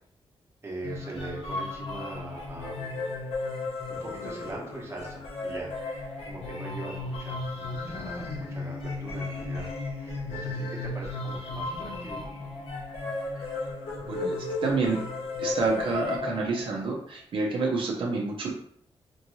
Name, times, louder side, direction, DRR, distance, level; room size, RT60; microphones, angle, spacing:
voice 1, 0.6-3.2 3.9-9.7 10.0-12.2, right 2 dB, 25° right, -3 dB, 1.0 m, -41 dB
sound 1, 0.8-16.9, left 3 dB, 80° left, 0.9 m, -34 dB
voice 2, 14.6-15.0 15.4-18.5, right 3 dB, 60° right, -1 dB, 0.6 m, -28 dB
4.4 x 2.6 x 3.0 m, 0.63 s
wide cardioid pair, 165°, 10 cm